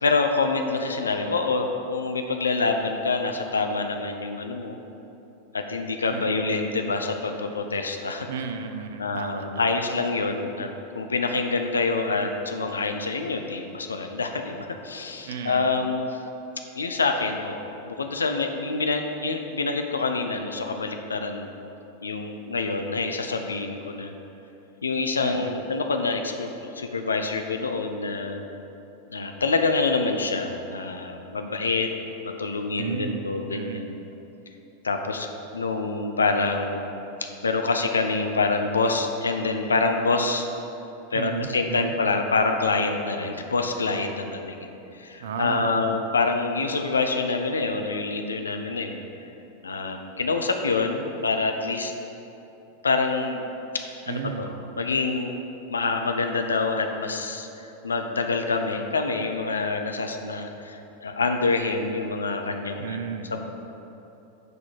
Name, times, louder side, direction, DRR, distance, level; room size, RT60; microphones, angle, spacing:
voice 1, 0.0-4.8 5.5-8.3 9.0-10.7 10.9-16.2 16.8-21.5 22.0-24.1 24.8-28.4 29.1-31.9 32.2-34.0 34.8-35.3 35.5-36.9 37.4-40.5 41.1-44.7 44.9-49.0 49.6-51.9 52.8-53.4 54.1-55.3 55.7-63.0 63.3-63.4, left 3 dB, 75° left, 5 dB, 0.7 m, -26 dB
voice 2, 6.1-6.5 8.3-9.7 15.2-15.6 25.2-25.5 32.8-33.3 33.5-33.8 41.1-41.9 45.2-46.0 54.1-54.5 62.8-63.4, right 6 dB, 60° right, 7 dB, 0.6 m, -33 dB
9.4 x 5.1 x 5.7 m, 2.9 s
figure-of-eight pair, 90°, 0 cm